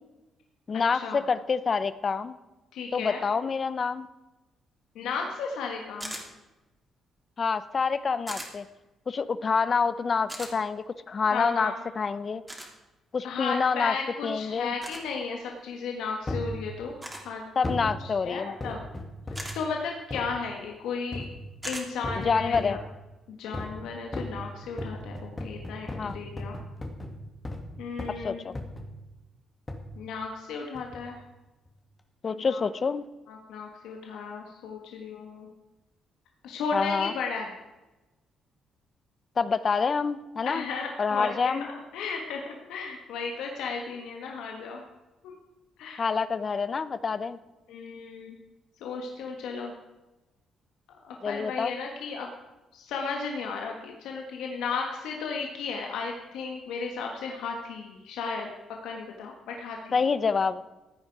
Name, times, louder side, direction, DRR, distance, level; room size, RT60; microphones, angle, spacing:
voice 1, 0.7-2.4 2.9-4.1 7.4-8.6 9.1-12.4 13.1-13.9 14.2-14.7 17.6-18.5 22.2-22.8 26.0-26.2 28.2-28.6 32.2-33.0 36.7-37.1 39.4-40.6 41.0-41.7 46.0-47.4 51.2-51.7 59.9-60.6, left 5 dB, 40° left, 15 dB, 0.6 m, -27 dB
voice 2, 2.7-3.2 4.9-6.1 11.3-11.8 13.2-17.0 17.2-17.4 18.0-18.8 19.5-21.2 21.7-22.8 23.3-26.6 27.8-28.4 29.9-31.2 32.3-32.6 33.3-35.5 36.4-37.5 40.4-44.9 45.2-45.3 45.8-46.1 47.7-48.4 48.8-49.7 50.9-52.3 52.7-58.5 58.8-59.9, left 5 dB, 85° left, 1 dB, 1.6 m, -34 dB
sound 1, 6.0-6.3 8.3-8.5 10.3-10.5 12.5-12.7 14.8-15.0 17.0-17.3 19.3-19.6 21.6-21.9, right 1 dB, 10° right, 3.0 m, -37 dB
sound 2, 16.3-16.6 17.6-17.9 18.6-19.6 20.1-20.3 21.1-21.5 22.0-22.8 23.5-23.8 24.1-27.7 28.0-28.2 28.6-28.9 29.7-29.9 30.7-31.1 31.7-31.8, left 1 dB, 20° left, 1.8 m, -36 dB
15.5 x 9.4 x 4.8 m, 1.1 s
cardioid pair, 90°, 0 cm